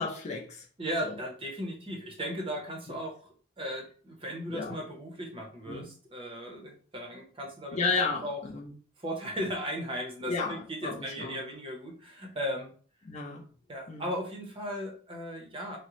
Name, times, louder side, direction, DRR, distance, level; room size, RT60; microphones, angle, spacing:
voice 1, 0.0-0.6 1.0-1.1 4.5-4.8 5.7-5.9 7.7-8.7 10.3-11.4 13.1-13.4 13.9-14.1, left 4 dB, 30° left, 1 dB, 0.4 m, -33 dB
voice 2, 0.8-7.8 8.2-8.4 9.0-12.7 13.7-15.8, equal, 25° right, 1 dB, 0.7 m, -36 dB
3.7 x 2.0 x 2.9 m, 0.43 s
head